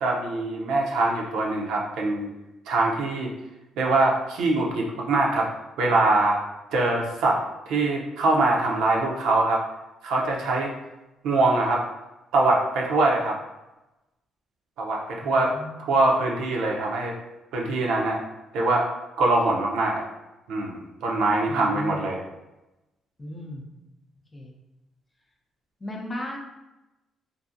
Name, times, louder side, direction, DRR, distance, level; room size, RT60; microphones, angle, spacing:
voice 1, 0.0-2.3 2.7-3.3 3.8-5.5 5.8-6.4 6.7-9.6 10.0-10.7 11.2-11.8 12.3-13.4 14.8-15.5 15.8-17.2 17.5-18.2 18.5-18.9 19.2-20.0 20.5-22.2, right 2 dB, 85° right, -1 dB, 0.5 m, -23 dB
voice 2, 15.2-15.9 21.5-22.0 23.2-23.7 24.3-24.5 25.8-26.4, left 1 dB, 25° left, 0 dB, 0.6 m, -36 dB
2.6 x 2.5 x 2.5 m, 0.99 s
cardioid pair, 90°, 0 cm